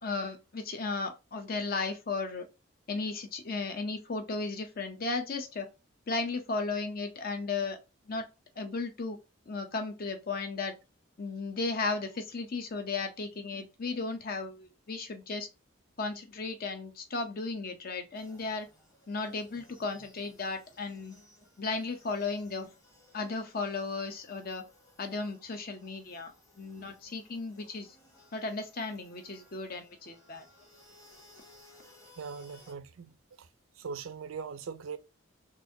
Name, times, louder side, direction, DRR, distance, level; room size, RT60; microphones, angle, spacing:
voice 1, 0.0-2.5 2.9-5.7 6.1-7.8 8.1-8.3 8.6-9.2 9.5-10.7 11.2-15.5 16.0-18.7 19.1-21.2 21.6-22.7 23.1-24.6 25.0-28.0 28.3-30.5, left 3 dB, 45° left, 0.7 m, -35 dB
sound 1, 18.1-32.7, left 1 dB, 15° left, 1.1 m, -60 dB
voice 2, 32.2-33.5 33.8-35.0, right 5 dB, 80° right, 0.4 m, -41 dB
4.0 x 2.6 x 2.7 m
head